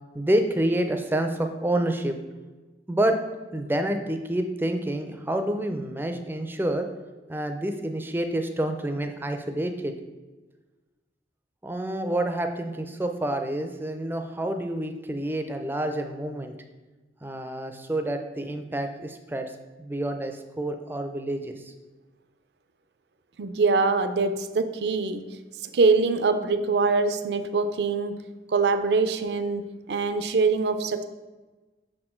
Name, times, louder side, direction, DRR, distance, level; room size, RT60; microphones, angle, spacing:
voice 1, 0.1-2.1 2.9-3.2 3.5-6.9 7.3-9.9 11.6-16.5 17.2-19.5 19.8-21.7, right 1 dB, 10° right, 6 dB, 0.4 m, -28 dB
voice 2, 23.4-25.2 25.6-28.2 28.5-31.0, right 4 dB, 70° right, 10 dB, 0.4 m, -24 dB
6.1 x 4.4 x 4.3 m, 1.2 s
head